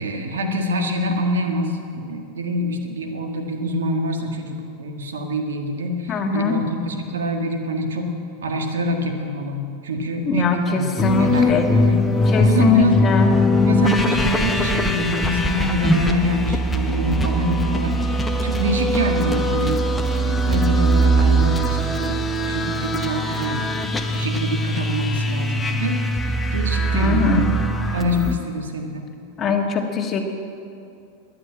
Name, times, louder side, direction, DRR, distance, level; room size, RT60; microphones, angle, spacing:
voice 1, 0.0-8.2 8.4-12.0 12.4-13.0 13.6-19.8 20.1-23.6 24.1-26.0 26.5-27.4 27.9-29.1, equal, 85° right, 4 dB, 1.6 m, -25 dB
voice 2, 6.1-6.6 10.2-11.7 12.2-13.3 26.9-27.5 29.4-30.3, left 5 dB, 30° left, 3 dB, 1.8 m, -21 dB
sound 1, 11.0-28.3, equal, 10° left, 1.2 m, -21 dB
11.0 x 10.0 x 8.8 m, 2.5 s
hypercardioid pair, 100°, 0 cm